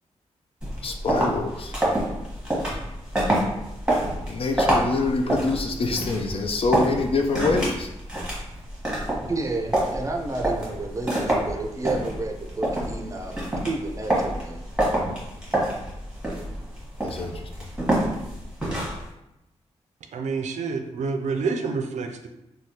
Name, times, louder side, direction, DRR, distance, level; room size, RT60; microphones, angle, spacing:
Wooden Shoes, 0.6-19.1, right 1 dB, 5° right, 1.2 m, -27 dB
voice 1, 0.8-1.7 4.3-7.9 17.0-17.5, left 3 dB, 50° left, 4 dB, 0.4 m, -25 dB
voice 2, 9.3-14.6, right 2 dB, 25° right, 3 dB, 0.5 m, -31 dB
voice 3, 20.1-22.3, right 4 dB, 85° right, 4 dB, 0.4 m, -28 dB
3.3 x 2.2 x 2.8 m, 0.89 s
cardioid pair, 75°, 12 cm